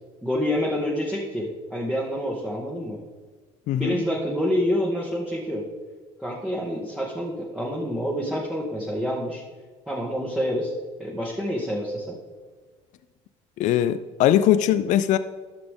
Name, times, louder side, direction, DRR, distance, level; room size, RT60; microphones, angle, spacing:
voice 1, 0.2-3.0 3.7-5.6 6.2-9.4 9.9-10.7 11.0-12.2, equal, 5° right, -4 dB, 1.6 m, -27 dB
voice 2, 3.7-4.0 13.6-15.2, left 11 dB, 55° left, 13 dB, 0.4 m, -21 dB
12.0 x 5.9 x 3.7 m, 1.4 s
hypercardioid pair, 75°, 15 cm